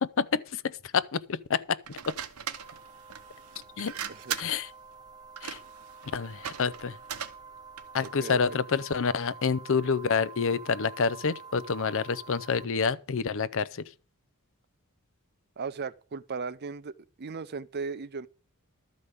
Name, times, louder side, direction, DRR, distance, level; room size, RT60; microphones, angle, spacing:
voice 1, 0.0-2.1 3.8-3.9 4.4-4.7 5.4-5.6 6.1-7.0 7.9-13.9, left 5 dB, 60° left, 0.6 m, -28 dB
sound 1, 1.8-8.2, right 8 dB, 90° right, 1.1 m, -40 dB
sound 2, 2.6-12.6, right 5 dB, 20° right, 1.0 m, -48 dB
voice 2, 8.0-8.4 15.6-18.3, right 5 dB, 45° right, 0.5 m, -37 dB
12.5 x 5.1 x 8.2 m
head